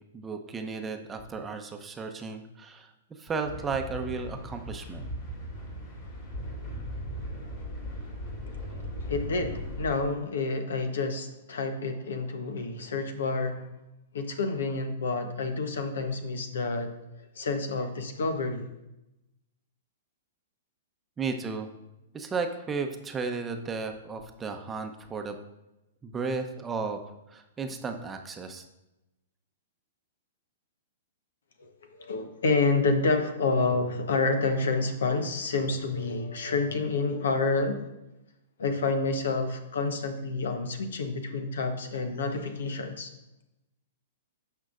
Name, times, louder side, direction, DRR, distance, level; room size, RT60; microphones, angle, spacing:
voice 1, 0.1-2.9 3.2-5.1 21.2-21.7 22.1-25.4 26.0-27.0 27.3-28.6, right 4 dB, 15° right, 5 dB, 0.8 m, -34 dB
sound 1, 3.4-10.0, equal, 50° left, 3.5 m, -38 dB
voice 2, 9.1-13.7 14.1-16.9 17.4-18.6 31.6-37.9 38.6-43.1, left 3 dB, 70° left, 7 dB, 1.1 m, -29 dB
16.5 x 5.6 x 2.5 m, 0.95 s
hypercardioid pair, 115°, 0 cm